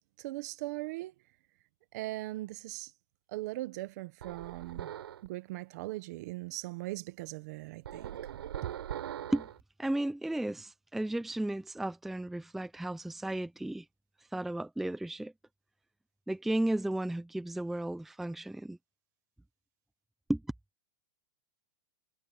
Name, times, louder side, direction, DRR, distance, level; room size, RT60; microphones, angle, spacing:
voice 1, 0.2-1.1 1.9-2.9 3.3-4.9 5.2-8.2 8.6-8.7, right 18 dB, 45° right, 1.2 m, -39 dB
sound 1, 4.2-5.3 7.9-9.6, right 10 dB, 90° right, 4.1 m, -41 dB
voice 2, 9.8-13.8 14.3-15.3 16.3-18.8 20.3-20.4, right 1 dB, ahead, 0.6 m, -34 dB
supercardioid pair, 165°, 13 cm